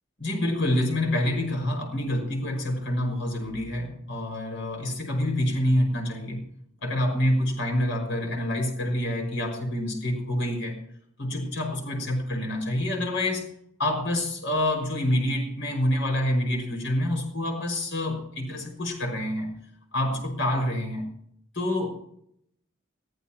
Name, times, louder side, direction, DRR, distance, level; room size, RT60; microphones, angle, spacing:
voice 1, 0.2-6.4 6.8-10.8 11.2-13.5 13.8-19.5 19.9-21.1 21.5-21.9, left 1 dB, 65° left, 2 dB, 5.7 m, -27 dB
22.5 x 14.0 x 3.0 m, 0.71 s
head